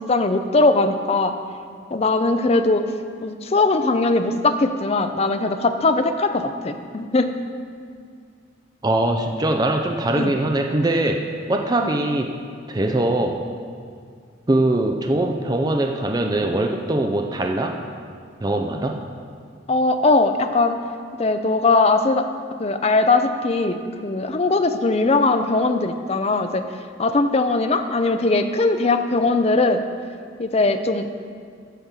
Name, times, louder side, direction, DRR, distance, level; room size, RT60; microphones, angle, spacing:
voice 1, 0.0-1.3 1.9-2.8 3.2-7.3 10.1-10.3 19.7-20.8 21.2-22.3 22.6-26.6 27.0-29.8 30.4-31.1, left 3 dB, 35° left, 7 dB, 0.5 m, -20 dB
voice 2, 8.8-11.2 11.5-12.3 12.7-13.4 14.5-17.8 18.4-19.0, right 1 dB, 20° right, 3 dB, 0.5 m, -22 dB
10.0 x 5.4 x 7.3 m, 2.2 s
head